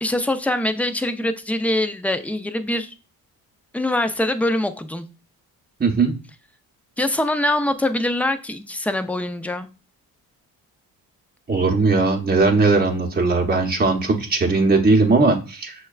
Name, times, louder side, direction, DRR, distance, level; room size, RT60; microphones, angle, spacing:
voice 1, 0.0-2.9 3.7-5.1 7.0-9.7, left 1 dB, 5° left, 0.4 m, -23 dB
voice 2, 5.8-6.1 11.5-15.7, right 3 dB, 20° right, 0.8 m, -18 dB
6.3 x 2.2 x 2.3 m
supercardioid pair, 60°, 41 cm